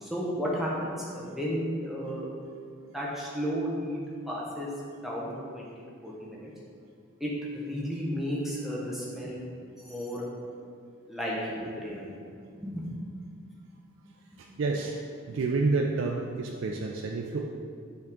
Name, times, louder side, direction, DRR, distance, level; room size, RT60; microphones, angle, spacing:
voice 1, 0.0-2.3 2.9-4.0 4.3-4.7 5.0-5.7 6.0-6.5 7.2-9.4 9.8-10.2 11.1-12.1 12.6-12.8, equal, ahead, -6 dB, 0.8 m, -33 dB
voice 2, 14.4-15.0 15.3-17.5, right 3 dB, 70° right, 1 dB, 0.4 m, -29 dB
7.1 x 3.6 x 3.6 m, 2.2 s
head